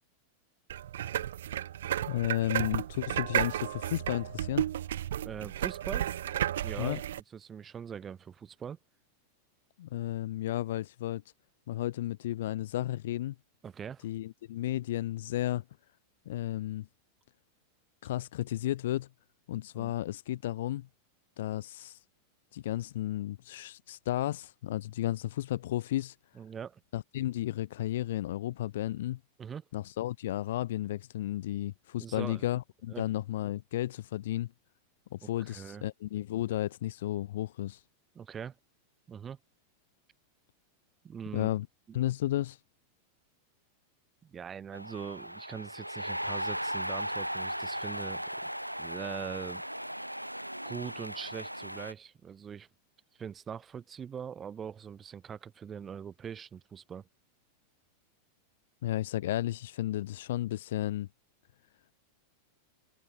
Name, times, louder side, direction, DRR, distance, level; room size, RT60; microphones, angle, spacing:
sound 1, 0.7-7.2, right 11 dB, 60° right, 0.7 m, -33 dB
voice 1, 2.1-4.6 6.8-7.0 9.8-11.2 11.7-13.3 14.0-15.6 16.2-16.9 18.0-19.1 19.5-20.9 21.4-22.0 22.5-26.2 26.9-29.2 29.7-34.5 35.1-37.8 41.3-41.7 41.9-42.6 58.8-61.1, left 14 dB, 55° left, 1.3 m, -33 dB
voice 2, 5.2-6.1 6.6-7.0 7.3-8.8 13.6-14.1 19.7-19.9 26.4-26.8 29.4-29.6 32.0-32.5 32.9-33.0 35.2-35.8 38.2-38.5 39.1-39.4 41.0-41.5 41.9-42.0 44.2-48.5 48.8-49.6 50.6-52.7 53.2-57.0, right 7 dB, 20° right, 3.8 m, -42 dB
sound 2, 44.7-51.9, equal, 90° right, 1.5 m, -37 dB
figure-of-eight pair, 90°, 0 cm